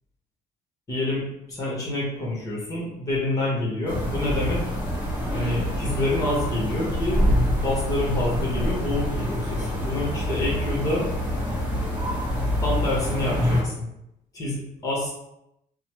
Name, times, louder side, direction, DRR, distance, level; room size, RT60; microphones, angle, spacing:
voice 1, 0.9-4.6 5.3-7.3 7.6-11.1 12.6-13.9 14.3-15.1, left 1 dB, 20° left, -4 dB, 1.1 m, -27 dB
sound 1, 3.9-13.6, equal, 10° right, 1.1 m, -26 dB
3.0 x 2.1 x 3.0 m, 0.82 s
cardioid pair, 110°, 17 cm